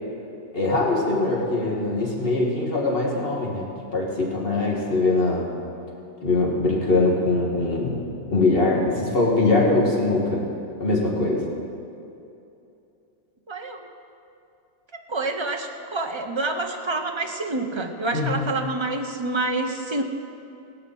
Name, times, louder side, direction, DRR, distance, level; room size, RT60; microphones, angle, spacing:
voice 1, 0.5-5.5 6.2-8.0 8.3-10.4 10.8-11.4 18.1-18.5, left 2 dB, 35° left, -3 dB, 2.5 m, -22 dB
voice 2, 13.5-13.9 14.9-20.0, right 2 dB, 40° right, 4 dB, 0.4 m, -27 dB
17.5 x 5.8 x 9.3 m, 2.8 s
omnidirectional pair, 1.9 m